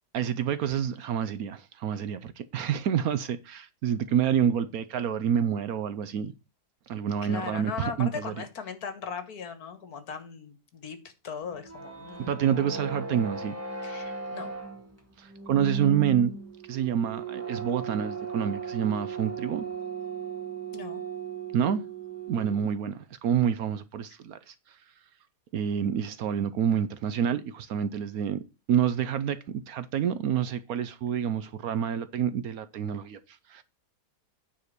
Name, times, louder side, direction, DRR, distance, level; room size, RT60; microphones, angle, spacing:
voice 1, 0.1-6.3 6.9-8.3 12.3-13.5 15.2-16.3 16.7-19.6 21.5-21.8 22.3-24.8 25.5-28.4 28.7-33.6, right 8 dB, 65° right, 1.0 m, -28 dB
voice 2, 7.2-12.5 13.8-14.5 20.7-21.0, left 6 dB, 65° left, 1.8 m, -38 dB
sound 1, 11.4-22.7, right 5 dB, 10° right, 1.9 m, -37 dB
9.4 x 4.3 x 6.5 m
omnidirectional pair, 1.8 m